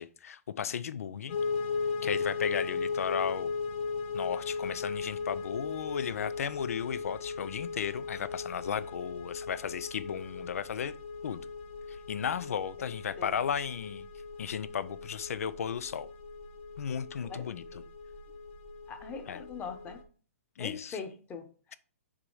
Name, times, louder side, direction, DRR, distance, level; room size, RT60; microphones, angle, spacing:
voice 1, 0.0-1.4 2.0-3.5 4.1-10.9 11.2-11.4 12.1-14.1 14.4-16.1 16.8-17.6 19.3-19.4 20.6-21.0, left 8 dB, 75° left, 0.5 m, -35 dB
sound 1, 1.3-20.0, left 4 dB, 50° left, 1.2 m, -37 dB
voice 2, 12.8-13.5 17.3-17.4 17.7-17.8 18.9-20.0 20.6-21.5, left 5 dB, 20° left, 1.2 m, -42 dB
6.1 x 4.2 x 4.7 m
hypercardioid pair, 130°, 8 cm